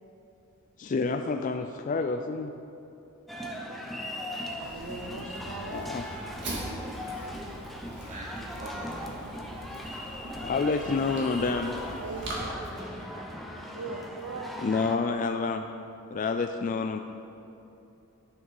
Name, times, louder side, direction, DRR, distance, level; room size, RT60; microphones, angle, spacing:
voice 1, 0.8-2.5 5.7-6.0 10.4-11.7 14.6-15.6 16.1-17.0, left 4 dB, 35° left, 6 dB, 0.3 m, -28 dB
sound 1, 3.3-15.0, left 1 dB, ahead, 0.6 m, -39 dB
Fire, 4.6-12.4, right 1 dB, 55° right, 2.2 m, -43 dB
voice 2, 4.6-5.9 7.9-8.2 12.0-12.7 13.7-14.6, right 3 dB, 80° right, -1 dB, 0.8 m, -40 dB
sound 2, 5.6-13.2, left 1 dB, 80° left, 2.4 m, -52 dB
voice 3, 8.1-9.1 9.4-9.8 11.7-11.8 13.0-13.3 13.6-13.7, right 1 dB, 35° right, -2 dB, 0.8 m, -43 dB
11.0 x 6.2 x 5.4 m, 2.8 s
head